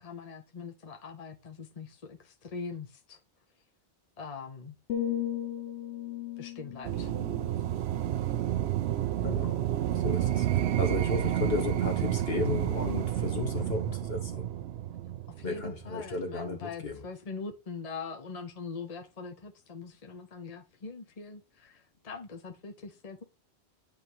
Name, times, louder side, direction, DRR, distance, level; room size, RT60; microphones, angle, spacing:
voice 1, 0.0-3.2 4.2-4.8 6.4-7.1 15.4-23.2, left 5 dB, 40° left, 1.0 m, -42 dB
sound 1, 4.9-8.9 9.2-9.6, left 10 dB, 85° left, 0.9 m, -37 dB
sound 2, 6.8-15.9, right 12 dB, 85° right, 0.9 m, -30 dB
voice 2, 9.2-9.6 9.9-14.5 15.4-17.0, left 3 dB, 65° left, 1.4 m, -34 dB
9.1 x 3.3 x 4.5 m
omnidirectional pair, 1.1 m